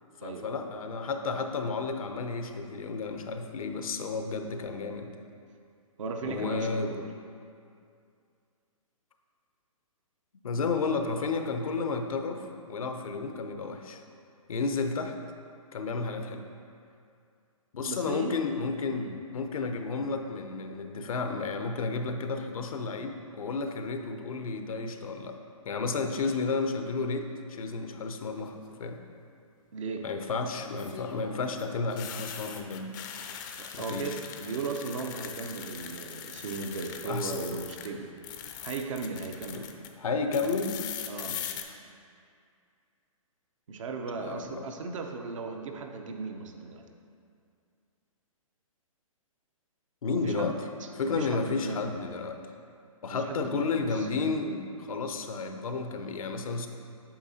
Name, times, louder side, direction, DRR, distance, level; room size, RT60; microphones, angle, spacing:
voice 1, 0.2-5.1 6.3-7.0 10.4-14.0 14.5-15.1 15.7-16.5 17.7-25.4 25.6-28.5 28.8-29.0 30.0-33.0 33.7-34.2 37.0-37.5 39.5-39.7 40.0-40.7 44.1-44.7 50.0-50.7 50.9-52.4 53.0-56.7, left 4 dB, 75° left, 6 dB, 0.7 m, -32 dB
voice 2, 6.0-7.1 17.9-18.4 18.9-19.2 26.1-26.2 29.7-30.1 33.6-38.1 38.6-39.7 41.1-41.4 43.7-46.8 50.1-50.5 50.8-51.9 53.1-54.1, right 4 dB, 65° right, 4 dB, 0.8 m, -36 dB
sound 1, 28.3-28.7 30.6-37.9 38.2-39.9 40.3-41.6, left 9 dB, 35° left, 0.5 m, -41 dB
8.6 x 5.8 x 2.8 m, 2.4 s
hypercardioid pair, 135°, 18 cm